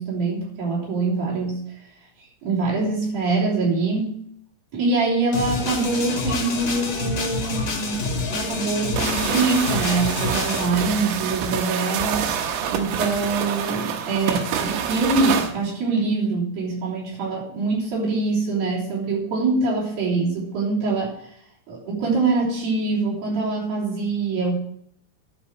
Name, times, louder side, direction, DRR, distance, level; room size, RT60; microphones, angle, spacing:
voice 1, 0.0-1.6 2.4-4.2 4.7-12.2 12.7-21.1 21.7-24.5, right 3 dB, 50° right, -6 dB, 4.8 m, -24 dB
sound 1, 5.3-10.7, left 3 dB, 55° left, 1.3 m, -27 dB
sound 2, 9.0-15.5, right 7 dB, 75° right, 3.0 m, -27 dB
11.5 x 5.3 x 7.5 m, 0.69 s
omnidirectional pair, 5.5 m